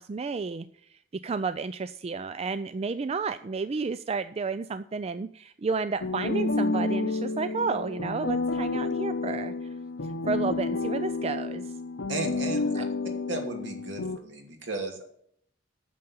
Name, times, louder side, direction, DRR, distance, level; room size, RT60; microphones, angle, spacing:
voice 1, 0.0-9.7 10.0-11.7 12.8-12.9, right 4 dB, 35° right, 12 dB, 0.4 m, -32 dB
sound 1, 6.0-14.2, left 3 dB, 80° left, 0.9 m, -30 dB
voice 2, 12.1-12.8 13.3-15.1, right 2 dB, 70° right, 3 dB, 2.7 m, -34 dB
9.2 x 6.8 x 8.5 m, 0.68 s
head